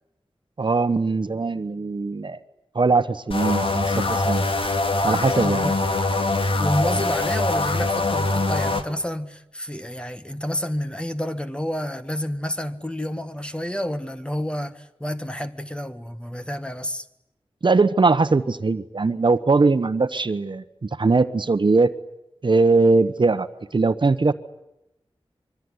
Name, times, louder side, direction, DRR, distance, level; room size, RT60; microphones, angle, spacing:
voice 1, 0.6-2.4 2.7-4.4 5.0-5.7 17.6-21.9 22.4-23.5 23.7-24.3, right 3 dB, 55° right, 1.2 m, -20 dB
sound 1, 3.3-8.8, left 2 dB, 65° left, 2.3 m, -23 dB
voice 2, 5.4-5.8 6.6-17.1, equal, 10° left, 1.5 m, -29 dB
25.0 x 24.0 x 9.8 m
wide cardioid pair, 90°, 10 cm